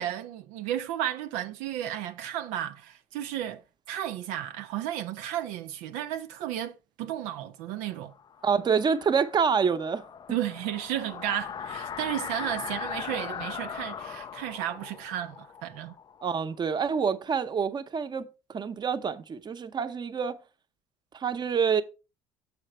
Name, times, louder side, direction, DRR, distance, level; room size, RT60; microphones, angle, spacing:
voice 1, 0.0-3.6 3.9-8.1 10.3-15.9, right 11 dB, 85° right, 0.5 m, -33 dB
sound 1, 8.0-16.8, left 7 dB, 35° left, 0.4 m, -40 dB
voice 2, 8.4-10.0 16.2-20.4 21.1-21.8, right 6 dB, 35° right, 0.8 m, -27 dB
6.5 x 5.1 x 4.5 m
supercardioid pair, 75°, 12 cm